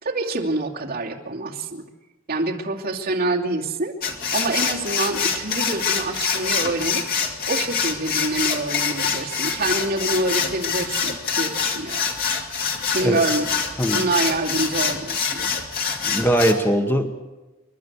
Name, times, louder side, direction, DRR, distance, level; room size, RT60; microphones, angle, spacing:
voice 1, 0.0-1.8 2.3-3.9 4.3-7.1 7.5-12.1 12.9-13.5 13.9-15.5, right 2 dB, 45° right, -2 dB, 2.6 m, -26 dB
sound 1, 4.0-16.5, left 6 dB, 50° left, 2.5 m, -25 dB
voice 2, 16.0-17.1, right 1 dB, 10° left, 5 dB, 1.1 m, -20 dB
29.0 x 12.0 x 8.3 m, 1.1 s
head